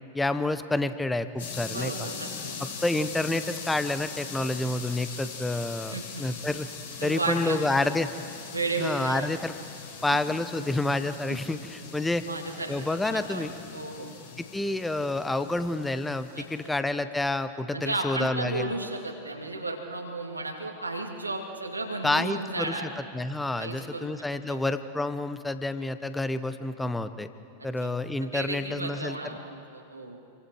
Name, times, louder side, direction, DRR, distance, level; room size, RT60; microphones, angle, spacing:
voice 1, 0.1-2.1 2.6-6.7 7.0-8.1 8.8-9.5 10.0-12.2 12.7-13.5 14.4-18.7 22.0-22.7 23.1-27.3 27.6-29.2, left 2 dB, 5° left, 12 dB, 1.0 m, -29 dB
sound 1, 1.4-16.8, left 5 dB, 60° left, 5.1 m, -41 dB
voice 2, 1.7-2.5 5.9-6.2 7.0-7.9 8.5-9.3 11.3-11.4 12.3-14.1 16.3-16.5 17.7-22.9 23.5-24.1 24.5-24.6 27.8-27.9 28.3-30.2, right 2 dB, 80° right, 2 dB, 2.5 m, -34 dB
28.5 x 23.5 x 4.8 m, 2.4 s
figure-of-eight pair, 90°, 0 cm